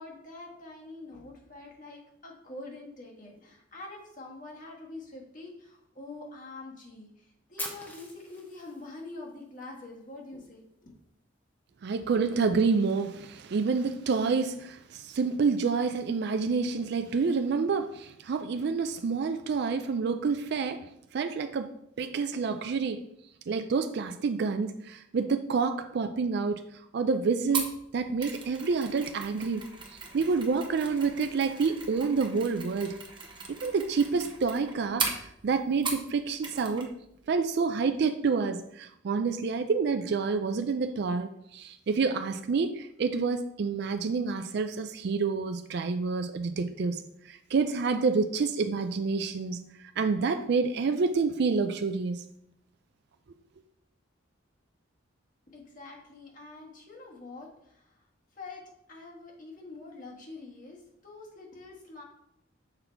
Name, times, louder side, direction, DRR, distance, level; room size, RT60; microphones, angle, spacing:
voice 1, 0.0-10.9 55.5-58.1 58.3-58.6 58.9-62.0, left 2 dB, 45° left, 1.5 m, -45 dB
Fire, 7.6-9.6, left 1 dB, 10° left, 0.9 m, -41 dB
voice 2, 11.8-21.7 22.0-23.0 23.5-26.6 26.9-29.6 30.1-33.0 33.5-36.9 37.3-47.0 47.3-49.6 50.0-52.2, right 4 dB, 55° right, 0.4 m, -28 dB
Mechanisms, 27.5-36.1 36.4-36.9 37.1-37.3, right 4 dB, 25° right, 1.0 m, -38 dB
6.6 x 4.1 x 4.4 m
head